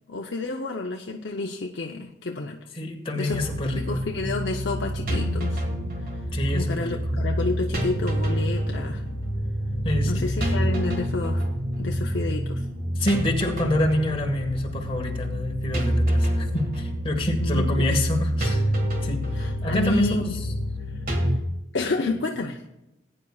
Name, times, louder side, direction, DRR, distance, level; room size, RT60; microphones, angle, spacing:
voice 1, 0.1-2.6 3.2-3.4 3.6-5.6 6.5-9.0 10.0-11.4 11.8-12.6 17.4-18.0 19.3-20.3 21.3-21.4 21.7-22.6, left 3 dB, 65° left, 1 dB, 0.7 m, -30 dB
voice 2, 2.7-4.0 6.3-7.2 9.8-10.6 12.9-18.7 19.0-19.3 19.6-20.4, left 1 dB, 30° left, 2 dB, 1.5 m, -27 dB
sound 1, 3.3-21.4, equal, 50° right, 1.7 m, -27 dB
19.5 x 9.7 x 2.4 m, 0.94 s
head